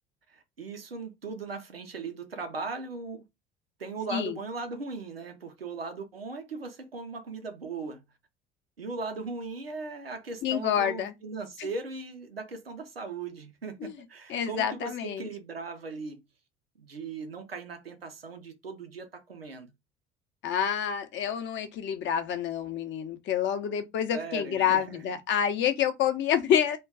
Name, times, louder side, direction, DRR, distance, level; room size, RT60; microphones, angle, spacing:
voice 1, 0.3-3.2 3.8-8.0 8.8-16.2 16.8-19.7 24.1-25.0, right 4 dB, 90° right, 0.5 m, -38 dB
voice 2, 10.4-11.1 11.6-11.7 13.8-14.0 14.3-15.3 20.4-26.8, left 9 dB, 40° left, 0.6 m, -28 dB
2.2 x 2.2 x 3.5 m
figure-of-eight pair, 55°, 29 cm